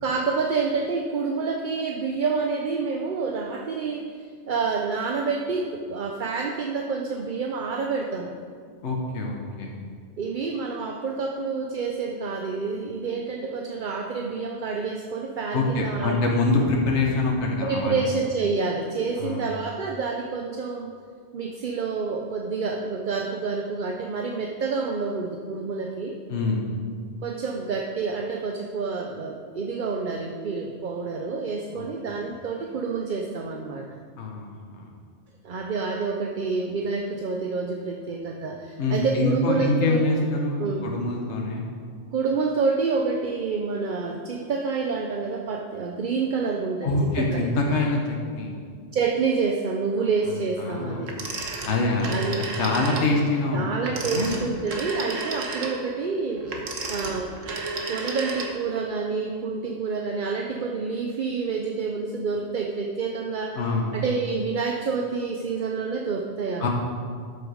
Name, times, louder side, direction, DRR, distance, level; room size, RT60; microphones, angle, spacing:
voice 1, 0.0-8.4 10.2-16.2 17.6-20.9 21.3-26.2 27.2-33.9 35.4-40.1 40.6-40.9 42.1-47.5 48.9-51.1 52.1-52.5 53.5-56.4 56.9-57.3 57.9-63.6 63.9-66.7, right 4 dB, 50° right, 2 dB, 0.8 m, -28 dB
voice 2, 8.8-9.7 15.5-18.0 19.2-19.5 26.3-26.6 31.7-31.9 34.2-34.8 38.8-41.6 46.8-48.6 50.6-51.1 51.6-53.7 54.0-54.3 63.5-63.9 66.6-66.7, left 2 dB, 65° left, 0 dB, 1.5 m, -25 dB
Telephone, 51.1-53.1 53.8-58.8, right 3 dB, 85° right, 1.6 m, -32 dB
13.0 x 7.0 x 5.0 m, 2.1 s
omnidirectional pair, 1.3 m